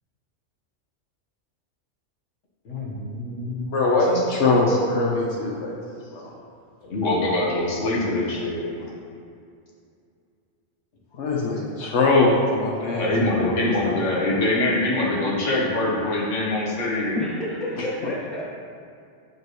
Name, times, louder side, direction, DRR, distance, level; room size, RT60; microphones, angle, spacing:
voice 1, 2.6-3.7 4.7-4.8 6.8-8.7 12.9-17.1, left 2 dB, 85° left, -4 dB, 1.6 m, -24 dB
voice 2, 3.7-6.3 8.6-8.8 11.1-13.9 17.8-17.9, left 2 dB, 70° left, -3 dB, 1.1 m, -22 dB
voice 3, 17.1-18.4, left 1 dB, ahead, -8 dB, 1.5 m, -29 dB
8.0 x 5.3 x 3.1 m, 2.4 s
omnidirectional pair, 1.2 m